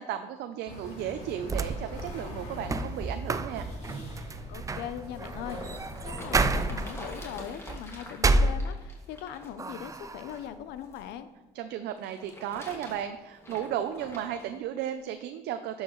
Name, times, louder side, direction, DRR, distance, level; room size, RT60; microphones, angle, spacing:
voice 1, 0.0-3.7 11.5-15.8, right 10 dB, 80° right, 8 dB, 0.6 m, -34 dB
sound 1, 0.7-6.3, left 1 dB, 40° left, 3.2 m, -42 dB
sound 2, 1.4-9.2 9.6-10.4, right 2 dB, 20° right, 0.4 m, -30 dB
voice 2, 4.5-11.3, left 10 dB, 85° left, 11 dB, 0.6 m, -40 dB
sound 3, 5.3-11.1 12.0-14.5 15.2-15.3, left 1 dB, 15° left, 2.1 m, -45 dB
11.0 x 7.2 x 3.1 m, 1.1 s
cardioid pair, 110°, 17 cm